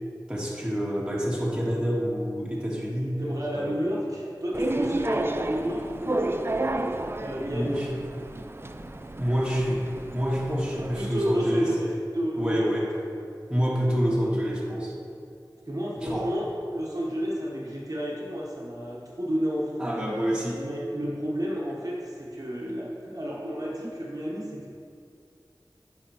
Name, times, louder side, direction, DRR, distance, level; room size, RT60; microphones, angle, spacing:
voice 1, 0.3-3.2 3.5-3.7 7.5-7.9 9.2-11.7 12.4-12.8 13.5-14.9 16.0-16.3 19.8-20.6, equal, 10° right, -5 dB, 1.5 m, -27 dB
voice 2, 3.2-6.7 7.2-7.8 10.9-12.7 15.7-16.4 16.7-19.8 20.6-24.7, equal, 50° right, -5 dB, 1.2 m, -31 dB
sound 1, 4.5-11.1, right 2 dB, 30° right, 0.4 m, -31 dB
10.5 x 5.8 x 3.0 m, 2.4 s
wide cardioid pair, 50°, 8 cm